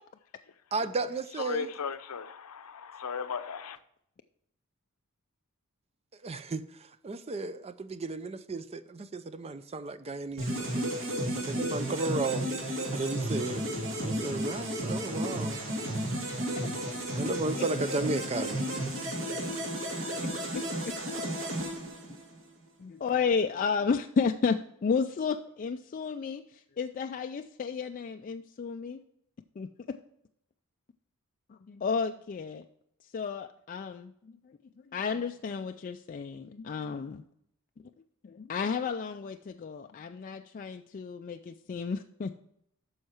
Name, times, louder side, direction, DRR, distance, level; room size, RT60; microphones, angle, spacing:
voice 1, 0.7-1.7 6.2-6.7 7.0-12.5 12.9-13.8 14.0-15.6 17.2-18.6, right 3 dB, 25° right, 0.4 m, -34 dB
voice 2, 1.4-3.8, left 5 dB, 75° left, 0.7 m, -36 dB
sound 1, 10.4-22.5, right 1 dB, 60° right, 2.4 m, -33 dB
voice 3, 20.1-20.9 22.8-29.0 29.6-29.7 31.5-32.7 33.1-34.1 34.9-37.2 38.2-42.4, left 5 dB, 35° left, 0.3 m, -32 dB
9.4 x 6.4 x 4.4 m
head